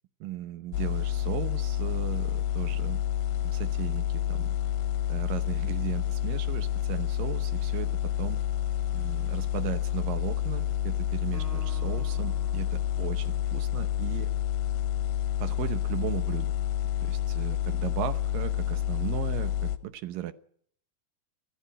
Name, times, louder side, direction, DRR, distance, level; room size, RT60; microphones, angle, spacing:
voice 1, 0.2-3.0 3.4-4.6 5.1-8.4 8.9-14.3 15.4-16.5 17.0-20.3, right 13 dB, 70° right, 11 dB, 2.4 m, -37 dB
sound 1, 0.7-19.8, left 11 dB, 80° left, 3.1 m, -29 dB
Acoustic guitar, 11.3-14.6, right 4 dB, 15° right, 4.2 m, -49 dB
25.5 x 14.0 x 8.6 m, 0.63 s
omnidirectional pair, 4.7 m